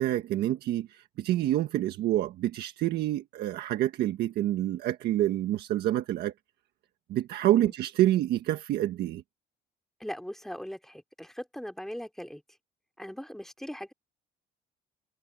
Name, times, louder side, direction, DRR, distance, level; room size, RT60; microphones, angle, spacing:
voice 1, 0.0-6.3 7.1-9.2, right 13 dB, 75° right, 1.5 m, -27 dB
voice 2, 10.0-12.4 13.0-13.9, equal, ahead, 3.1 m, -40 dB
cardioid pair, 110°, 17 cm